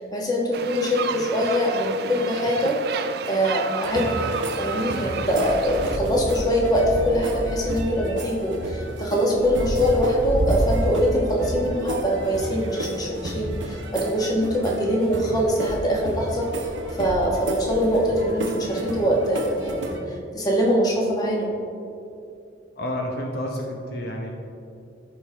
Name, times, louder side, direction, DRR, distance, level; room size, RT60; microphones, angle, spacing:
voice 1, 0.0-2.8 3.3-4.3 4.6-16.5 17.0-19.9 20.3-21.5, equal, 20° left, -2 dB, 1.2 m, -23 dB
sound 1, 0.5-6.0, right 6 dB, 55° right, 0.4 m, -32 dB
sound 2, 3.8-20.0, right 1 dB, 85° right, 0.9 m, -30 dB
voice 2, 22.8-24.3, left 1 dB, 55° left, 0 dB, 0.8 m, -29 dB
14.0 x 5.3 x 3.3 m, 2.6 s
head